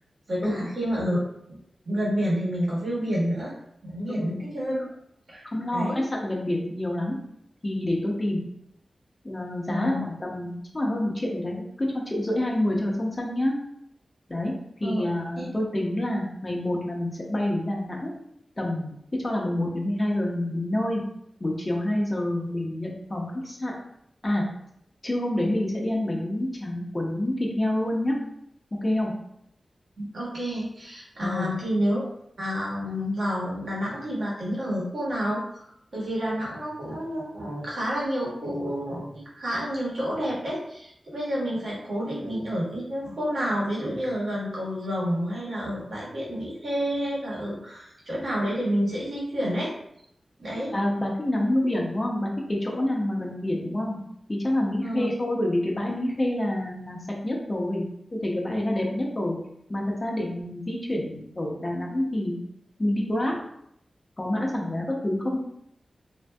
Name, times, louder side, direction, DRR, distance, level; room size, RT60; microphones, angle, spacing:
voice 1, 0.3-1.2 1.8-3.5 3.8-4.9 5.3-6.0 9.7-10.1 14.8-15.1 15.4-15.5 30.0-32.0 32.4-35.7 35.9-49.7 50.4-50.7 54.8-55.1, equal, 70° right, -6 dB, 1.2 m, -29 dB
voice 2, 5.5-7.1 7.6-8.4 9.2-13.5 14.3-14.5 14.8-18.1 18.6-18.9 19.2-21.0 21.4-23.7 24.2-24.4 25.0-28.1 28.8-29.1 31.2-31.5 50.7-54.0 54.3-57.0 57.2-57.9 58.2-59.4 59.7-62.4 62.8-63.3 64.2-65.4, left 1 dB, 25° left, -1 dB, 0.5 m, -27 dB
3.2 x 2.6 x 2.2 m, 0.74 s
wide cardioid pair, 100°, 0 cm